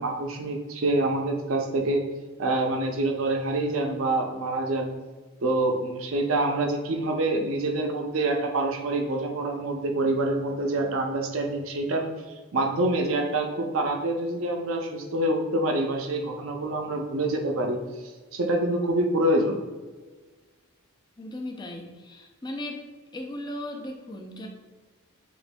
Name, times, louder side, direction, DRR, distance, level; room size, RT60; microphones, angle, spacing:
voice 1, 0.0-2.0 2.4-4.9 5.4-12.1 12.5-17.8 18.3-19.6, right 2 dB, 65° right, 3 dB, 0.6 m, -26 dB
voice 2, 21.2-22.8 23.1-24.5, left 1 dB, 20° left, 3 dB, 0.4 m, -37 dB
6.8 x 2.5 x 2.2 m, 1.3 s
head